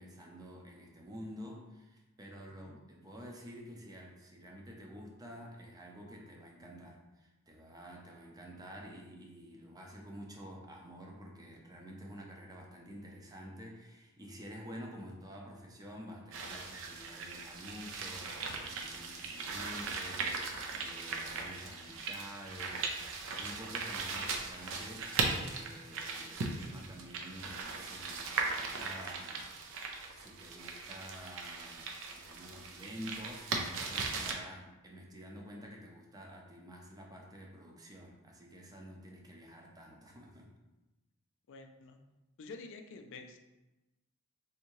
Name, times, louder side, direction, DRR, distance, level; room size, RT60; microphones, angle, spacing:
voice 1, 0.0-29.8 30.1-40.5, equal, 15° right, 0 dB, 0.5 m, -49 dB
sound 1, 16.3-34.3, right 4 dB, 65° right, 0.5 m, -38 dB
voice 2, 41.5-42.0 42.4-43.4, left 3 dB, 60° left, 6 dB, 0.4 m, -49 dB
3.5 x 2.7 x 3.0 m, 1.0 s
head